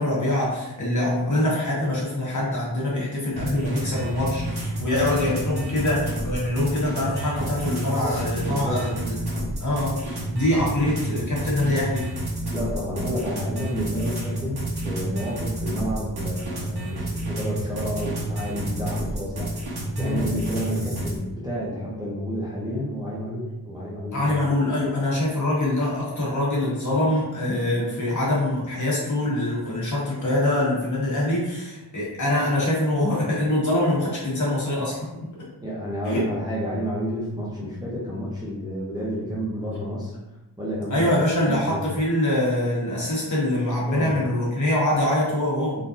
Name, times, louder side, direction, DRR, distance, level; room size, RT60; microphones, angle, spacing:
voice 1, 0.0-12.1 20.0-20.2 24.1-35.0 36.0-36.2 40.9-45.8, left 1 dB, 45° left, -6 dB, 1.2 m, -24 dB
sound 1, 3.4-21.2, right 1 dB, 70° right, 1.0 m, -30 dB
voice 2, 8.0-9.2 12.5-19.5 20.0-24.5 35.6-40.1 40.6-41.0 41.4-41.9 43.8-44.1, equal, 10° right, -7 dB, 0.6 m, -30 dB
3.7 x 2.6 x 2.5 m, 0.99 s
wide cardioid pair, 140°, 40 cm